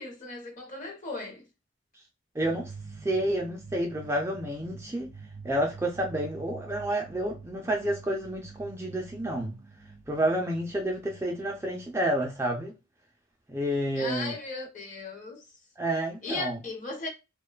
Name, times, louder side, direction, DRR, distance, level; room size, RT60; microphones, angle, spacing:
voice 1, 0.0-1.4 14.0-15.5 16.2-17.1, left 3 dB, 40° left, 0.8 m, -37 dB
voice 2, 2.3-2.7 3.0-5.1 5.4-9.6 10.1-12.7 13.5-14.4 15.8-16.6, right 1 dB, 15° right, 0.3 m, -29 dB
sound 1, 2.4-12.6, right 4 dB, 60° right, 0.6 m, -47 dB
2.5 x 2.2 x 2.2 m
head